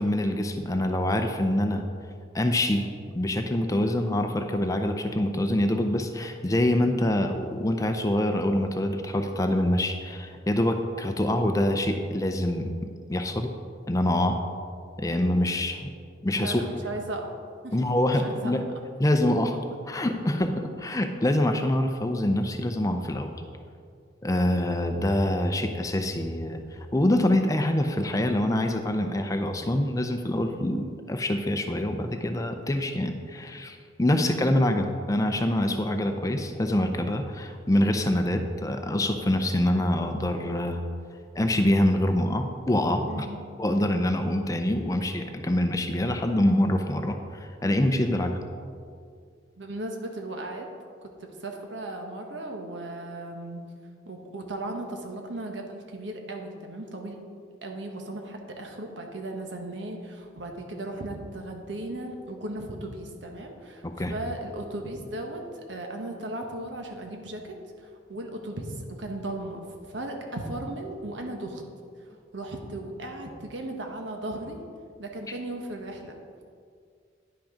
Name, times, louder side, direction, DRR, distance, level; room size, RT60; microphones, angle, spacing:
voice 1, 0.0-1.8 2.3-2.9 3.1-13.5 13.9-14.4 15.0-15.9 16.2-16.6 17.7-18.6 19.0-19.6 19.9-23.3 24.2-40.8 41.4-43.3 43.6-48.4 63.8-64.1, left 1 dB, 20° left, 6 dB, 0.5 m, -25 dB
voice 2, 16.4-17.3 17.6-17.8 18.2-18.5 43.1-43.4 49.6-50.7 51.0-53.6 54.0-57.2 57.6-71.6 72.0-72.1 72.3-74.6 75.0-76.2, right 1 dB, 80° right, 3 dB, 1.2 m, -36 dB
10.5 x 6.0 x 5.0 m, 2.2 s
head